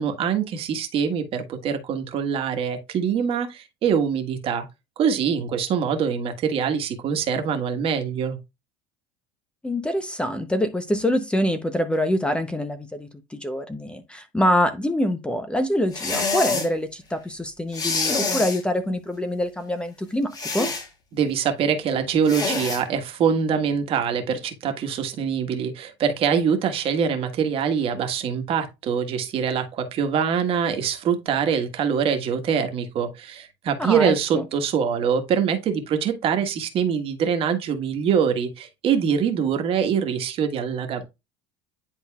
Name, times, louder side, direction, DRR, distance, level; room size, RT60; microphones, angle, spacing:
voice 1, 0.0-4.6 5.0-8.4 21.1-41.0, right 7 dB, 45° right, 1.4 m, -24 dB
voice 2, 9.6-20.7 33.8-34.4, left 1 dB, 10° left, 0.7 m, -25 dB
sound 1, 15.9-16.7 17.7-18.6 20.3-20.9 22.3-22.8, left 4 dB, 30° left, 2.3 m, -26 dB
10.0 x 4.0 x 2.3 m
supercardioid pair, 115°, 13 cm